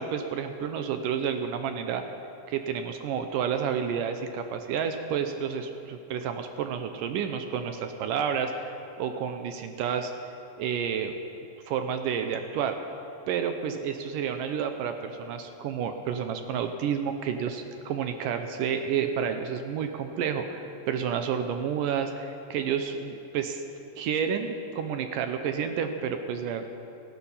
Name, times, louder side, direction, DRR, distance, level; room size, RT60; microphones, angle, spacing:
voice 1, 0.0-2.0 2.5-8.7 9.0-10.1 10.6-11.1 11.7-12.8 13.3-23.6 24.0-26.7, right 7 dB, 75° right, 7 dB, 2.2 m, -30 dB
18.5 x 14.0 x 5.6 m, 2.8 s
omnidirectional pair, 4.1 m